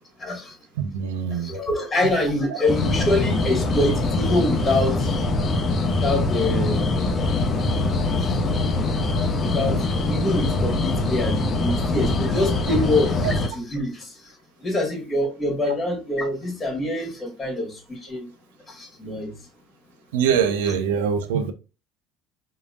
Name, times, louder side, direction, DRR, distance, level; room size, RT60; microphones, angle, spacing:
voice 1, 0.2-0.6 1.3-5.2 6.0-6.9 8.3-8.4 9.4-9.8 10.1-14.3 14.6-18.3 18.7-19.3, left 1 dB, 20° left, 1.8 m, -25 dB
voice 2, 0.8-1.5 2.5-2.6 7.6-7.7 20.1-21.5, right 7 dB, 70° right, 0.5 m, -23 dB
sound 1, 2.7-13.5, left 2 dB, 35° left, 0.8 m, -23 dB
4.9 x 3.0 x 2.4 m
figure-of-eight pair, 60°, 0 cm